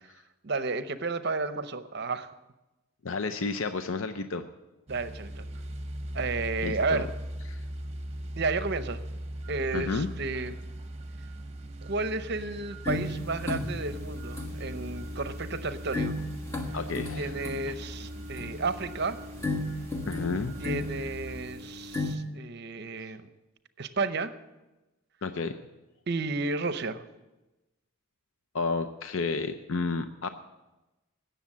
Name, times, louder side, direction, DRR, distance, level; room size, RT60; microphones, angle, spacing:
voice 1, 0.4-2.3 4.9-5.5 6.1-7.1 8.4-9.0 9.5-10.6 11.8-16.2 17.1-19.2 20.6-23.3 23.8-24.4 26.1-27.0, right 3 dB, 50° right, 11 dB, 0.7 m, -32 dB
voice 2, 3.0-4.5 6.6-7.0 7.5-7.6 9.7-10.1 16.7-17.3 20.1-20.5 25.2-25.6 28.5-30.3, left 4 dB, 65° left, 8 dB, 0.6 m, -31 dB
sound 1, 4.9-21.4, right 1 dB, 30° right, 1.0 m, -40 dB
sound 2, 12.8-22.2, left 2 dB, 15° left, 1.2 m, -36 dB
17.5 x 6.9 x 7.3 m, 1.1 s
head